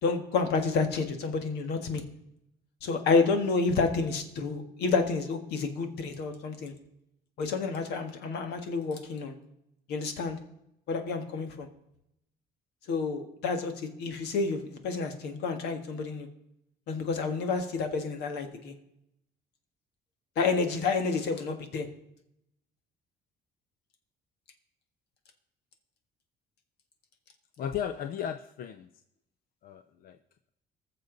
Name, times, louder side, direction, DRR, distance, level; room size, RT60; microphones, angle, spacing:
voice 1, 0.0-2.0 2.8-6.7 7.4-9.3 9.9-10.4 10.9-11.7 12.9-16.3 16.9-18.7 20.3-21.9, left 4 dB, 80° left, 6 dB, 1.7 m, -29 dB
voice 2, 27.6-28.9 29.6-30.2, left 9 dB, 60° left, 10 dB, 0.6 m, -35 dB
19.5 x 6.9 x 4.0 m, 0.80 s
cardioid pair, 110°, 17 cm